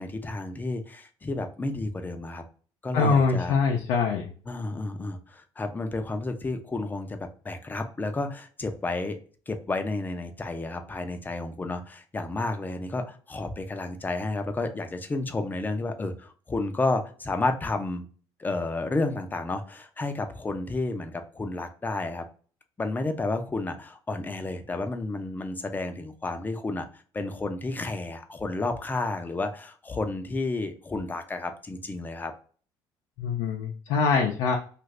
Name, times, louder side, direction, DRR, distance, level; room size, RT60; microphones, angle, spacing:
voice 1, 0.0-2.4 2.8-3.5 4.5-7.2 7.4-9.2 9.5-18.1 18.4-22.2 22.8-32.3, left 2 dB, 20° left, 6 dB, 0.5 m, -31 dB
voice 2, 2.9-4.3 33.2-34.6, left 5 dB, 80° left, 1 dB, 0.5 m, -24 dB
2.5 x 2.5 x 3.2 m, 0.41 s
cardioid pair, 100°, 10 cm